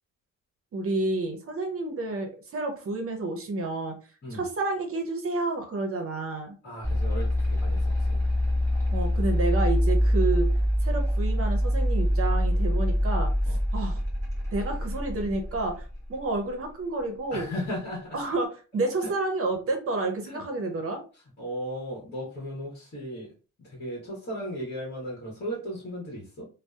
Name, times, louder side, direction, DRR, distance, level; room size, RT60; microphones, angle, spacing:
voice 1, 0.7-3.9 4.3-6.6 8.9-10.5 10.8-14.0 14.5-17.5 18.1-21.0, right 2 dB, 50° right, 3 dB, 0.6 m, -30 dB
voice 2, 6.6-8.2 13.4-13.6 17.3-18.2 20.2-20.4 21.4-23.3 23.6-26.5, equal, 35° left, -3 dB, 1.1 m, -36 dB
sound 1, 6.8-15.9, equal, 10° left, 0.9 m, -25 dB
2.7 x 2.0 x 2.3 m, 0.36 s
cardioid pair, 115°, 30 cm